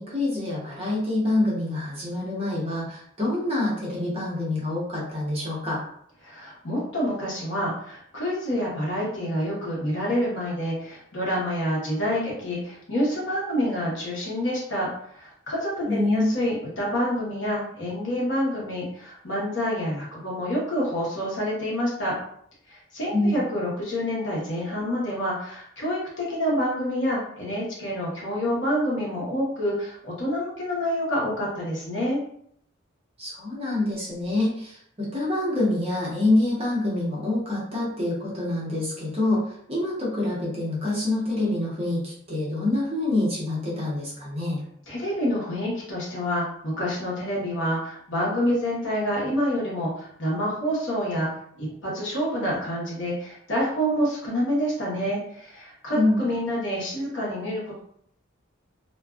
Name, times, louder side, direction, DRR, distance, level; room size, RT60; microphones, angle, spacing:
voice 1, 0.0-5.8 15.9-16.3 23.1-23.4 33.2-44.6 55.9-56.2, left 2 dB, 30° right, -5 dB, 0.8 m, -26 dB
voice 2, 6.2-22.1 22.7-32.2 44.9-51.3 51.6-57.8, equal, 65° left, -5 dB, 1.0 m, -27 dB
2.5 x 2.3 x 2.3 m, 0.67 s
head